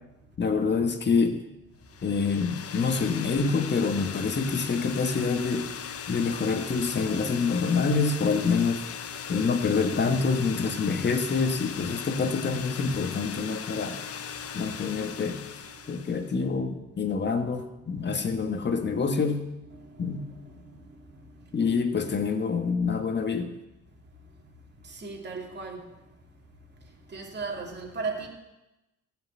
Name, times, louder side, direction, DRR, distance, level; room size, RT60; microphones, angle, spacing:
voice 1, 0.4-1.4 2.0-8.8 9.3-14.0 14.5-15.4 15.9-19.4 20.0-20.3 21.5-23.5, left 5 dB, 35° left, 6 dB, 1.5 m, -26 dB
sound 1, 1.9-16.3, left 7 dB, 50° left, 0.9 m, -38 dB
voice 2, 19.7-20.4 24.8-25.9 27.1-28.3, right 4 dB, 35° right, 0 dB, 2.6 m, -36 dB
14.5 x 5.7 x 8.1 m, 0.99 s
cardioid pair, 90°, 30 cm